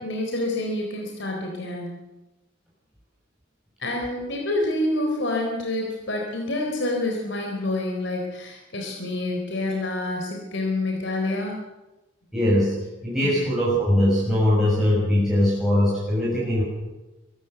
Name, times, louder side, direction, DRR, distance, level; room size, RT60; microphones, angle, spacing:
voice 1, 0.0-2.0 3.8-11.6 13.2-13.3, left 2 dB, 65° left, 1 dB, 3.9 m, -27 dB
voice 2, 12.3-12.8 13.0-16.6, left 1 dB, ahead, -7 dB, 6.5 m, -21 dB
23.5 x 13.5 x 8.0 m, 1.0 s
head